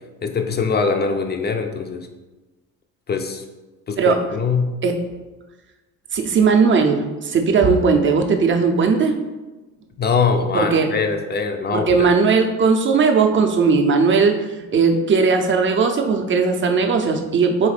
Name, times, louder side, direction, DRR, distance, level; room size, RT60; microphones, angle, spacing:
voice 1, 0.2-2.1 3.1-3.4 3.9-4.7 10.0-11.9, left 5 dB, 25° left, 5 dB, 0.5 m, -22 dB
voice 2, 6.1-9.2 10.5-10.9 11.7-17.7, right 5 dB, 30° right, 4 dB, 0.6 m, -17 dB
4.2 x 3.4 x 3.3 m, 1.2 s
supercardioid pair, 70°, 43 cm